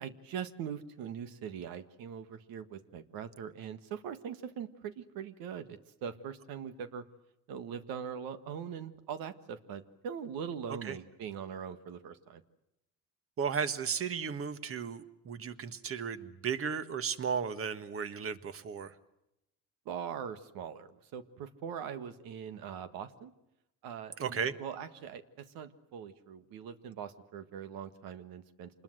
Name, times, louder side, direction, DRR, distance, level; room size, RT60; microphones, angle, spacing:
voice 1, 0.0-7.0 7.5-12.4 19.9-23.3 23.8-28.7, right 8 dB, 75° right, 11 dB, 1.7 m, -42 dB
voice 2, 13.4-18.9 24.2-24.5, right 6 dB, 40° right, 12 dB, 1.6 m, -35 dB
27.0 x 21.0 x 7.9 m, 0.88 s
cardioid pair, 125°, 36 cm